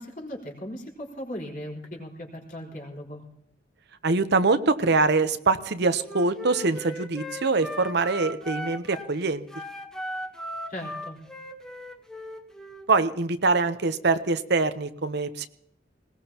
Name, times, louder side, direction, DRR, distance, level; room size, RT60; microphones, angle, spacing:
voice 1, 0.0-3.2 10.7-11.2, equal, 50° left, -1 dB, 4.3 m, -38 dB
voice 2, 4.0-9.5 12.9-15.5, right 3 dB, 65° right, 11 dB, 0.8 m, -24 dB
Wind instrument woodwind instrument, 6.0-9.1 9.5-12.9, left 1 dB, 5° left, 1.1 m, -38 dB
20.5 x 19.0 x 2.9 m, 0.71 s
head